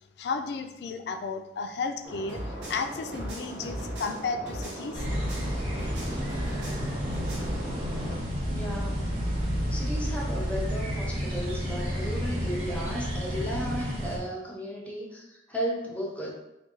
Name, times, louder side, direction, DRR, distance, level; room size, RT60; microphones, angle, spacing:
voice 1, 0.2-2.4 2.7-5.0, left 4 dB, 65° left, 8 dB, 0.3 m, -33 dB
sound 1, 2.0-8.2, right 1 dB, 25° right, 0.9 m, -40 dB
sound 2, 2.3-5.5 5.8-7.6, equal, 80° right, 1.0 m, -38 dB
sound 3, 4.9-14.2, equal, 45° right, 1.0 m, -31 dB
voice 2, 8.5-9.0 9.7-16.3, equal, 10° left, -2 dB, 0.6 m, -34 dB
3.9 x 2.2 x 3.7 m, 0.91 s
head